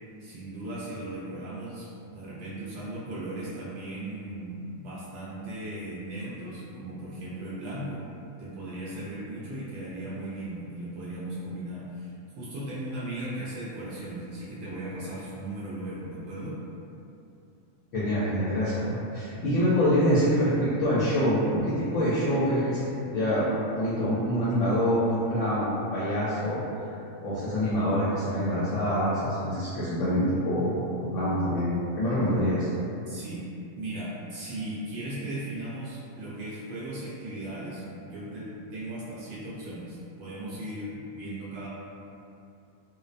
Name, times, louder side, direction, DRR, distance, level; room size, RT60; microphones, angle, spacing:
voice 1, 0.2-8.1 8.4-12.1 12.4-16.6 33.1-33.5 33.8-41.7, right 1 dB, 65° right, -9 dB, 0.7 m, -37 dB
voice 2, 17.9-22.8 23.1-26.9 27.2-32.7, equal, 70° left, -10 dB, 0.9 m, -26 dB
2.4 x 2.1 x 2.5 m, 2.6 s
omnidirectional pair, 1.4 m